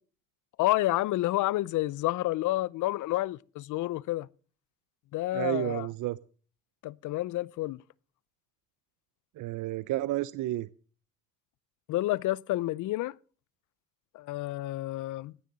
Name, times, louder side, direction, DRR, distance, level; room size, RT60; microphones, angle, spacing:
voice 1, 0.6-4.3 5.1-5.9 6.8-7.8 11.9-13.2 14.1-15.3, left 16 dB, 80° left, 0.6 m, -29 dB
voice 2, 5.3-6.2 9.4-10.7, right 15 dB, 80° right, 0.6 m, -31 dB
17.5 x 6.7 x 7.4 m
cardioid pair, 90°, 30 cm